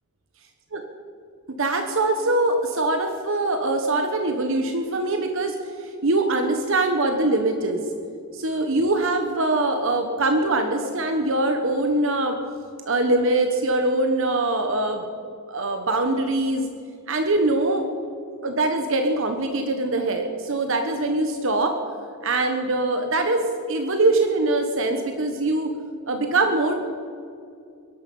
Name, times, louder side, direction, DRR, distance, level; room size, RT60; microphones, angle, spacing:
voice 1, 1.6-7.9 8.3-12.4 12.8-15.0 15.5-16.6 17.1-17.8 18.4-21.8 22.2-25.7 26.1-26.7, right 2 dB, 60° right, 5 dB, 1.2 m, -23 dB
22.0 x 11.5 x 5.5 m, 2.4 s
head